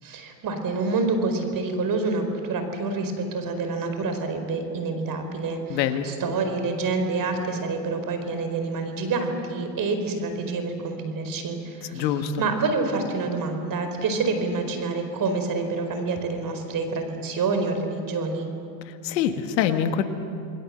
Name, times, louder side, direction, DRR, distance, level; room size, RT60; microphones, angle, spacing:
voice 1, 0.0-12.0 12.4-18.5, right 3 dB, 40° right, 6 dB, 4.8 m, -27 dB
voice 2, 5.7-6.1 11.9-12.4 18.9-20.0, left 9 dB, 85° left, 7 dB, 1.9 m, -25 dB
29.5 x 21.0 x 7.8 m, 2.6 s
supercardioid pair, 100°, 50 cm